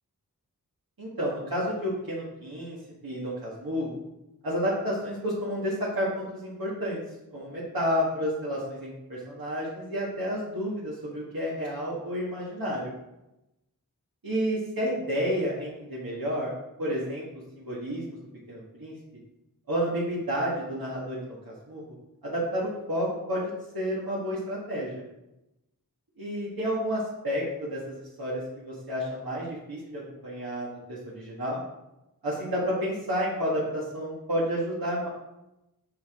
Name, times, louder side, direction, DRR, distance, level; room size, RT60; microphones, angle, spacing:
voice 1, 1.0-2.8 3.0-4.0 4.4-7.0 7.3-12.9 14.2-16.5 16.8-17.2 17.5-18.2 18.5-18.9 19.7-21.8 22.2-25.0 26.2-31.6 32.2-35.1, equal, 70° right, -7 dB, 1.7 m, -30 dB
7.0 x 5.0 x 3.6 m, 0.93 s
wide cardioid pair, 55°, 37 cm